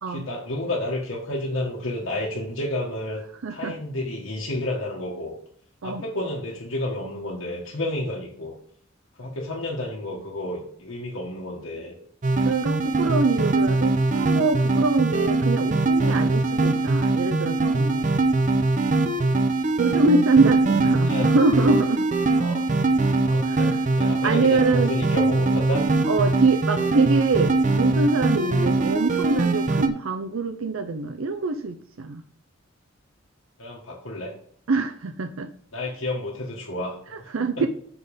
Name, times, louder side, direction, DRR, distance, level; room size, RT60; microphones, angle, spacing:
voice 1, 0.1-3.2 3.5-5.3 5.8-8.5 9.2-12.0 19.1-19.3 20.9-21.3 22.4-22.6 23.2-25.9 33.6-34.3 35.7-37.5, left 1 dB, 85° left, -3 dB, 1.4 m, -31 dB
voice 2, 3.4-3.8 5.8-6.0 12.4-18.0 19.8-22.1 23.4-23.7 24.2-24.9 26.1-32.2 34.7-35.5 37.1-37.7, right 3 dB, 90° right, 6 dB, 0.6 m, -24 dB
sound 1, 12.2-29.9, right 2 dB, 40° right, 0.7 m, -22 dB
6.2 x 5.1 x 5.3 m, 0.62 s
head